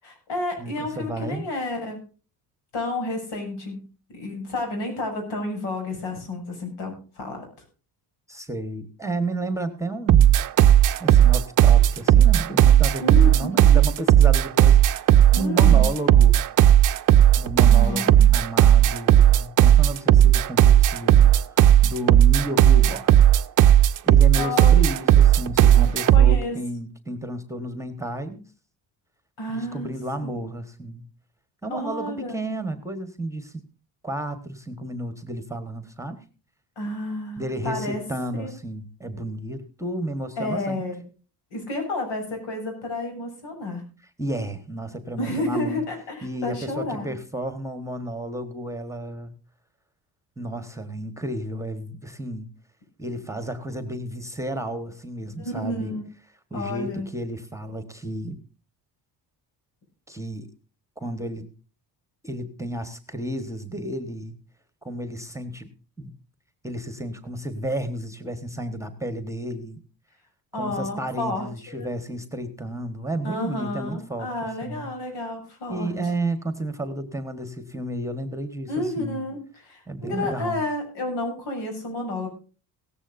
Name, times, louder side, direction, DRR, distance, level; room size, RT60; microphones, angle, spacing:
voice 1, 0.0-2.0 2.7-3.9 4.1-7.4 13.0-13.8 15.3-15.9 17.6-18.3 24.3-24.8 25.8-26.6 29.4-29.9 30.2-30.5 31.7-32.3 36.8-38.0 38.4-38.5 40.4-41.0 41.5-43.8 45.2-47.1 55.4-56.1 56.5-57.1 70.5-71.9 73.2-75.9 78.7-82.3, left 2 dB, 80° left, 3 dB, 7.7 m, -31 dB
voice 2, 0.6-1.5 8.3-10.3 11.0-16.4 17.4-23.2 24.0-28.4 29.5-31.0 31.6-33.6 34.0-36.2 37.4-40.8 44.2-45.8 46.2-49.3 50.4-52.5 53.0-55.9 56.5-58.4 60.1-60.5 61.0-61.4 62.2-64.4 64.8-65.7 66.0-66.1 66.6-69.8 70.5-74.9 75.7-79.2 79.9-80.6, right 1 dB, 5° right, 9 dB, 1.3 m, -32 dB
sound 1, 10.1-26.4, right 11 dB, 45° right, 0.6 m, -15 dB
17.0 x 14.5 x 2.6 m, 0.36 s
cardioid pair, 135°, 43 cm